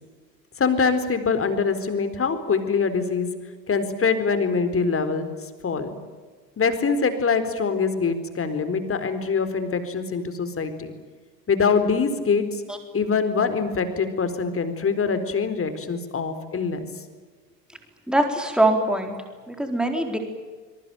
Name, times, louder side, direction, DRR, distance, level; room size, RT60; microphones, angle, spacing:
voice 1, 0.6-3.3 3.7-5.3 5.6-5.9 6.6-10.9 11.5-12.6 12.9-16.8, left 5 dB, 25° left, 9 dB, 4.2 m, -24 dB
voice 2, 18.1-19.1 19.5-20.2, right 1 dB, ahead, 4 dB, 4.1 m, -22 dB
26.0 x 23.0 x 9.0 m, 1.4 s
hypercardioid pair, 75°, 49 cm